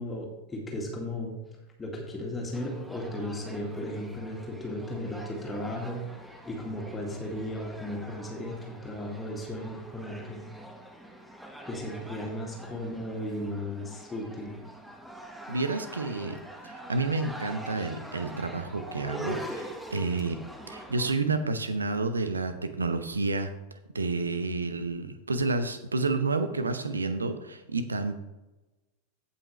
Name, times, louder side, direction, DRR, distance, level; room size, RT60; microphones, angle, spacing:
voice 1, 0.0-1.4 1.8-6.0 6.5-10.5 11.7-14.6, left 1 dB, 15° left, -1 dB, 2.0 m, -35 dB
sound 1, 2.5-21.1, right 1 dB, 5° right, 1.2 m, -44 dB
voice 2, 15.5-23.5 23.9-28.1, right 3 dB, 75° right, 10 dB, 0.9 m, -30 dB
15.5 x 5.6 x 3.2 m, 1.0 s
figure-of-eight pair, 90°, 0 cm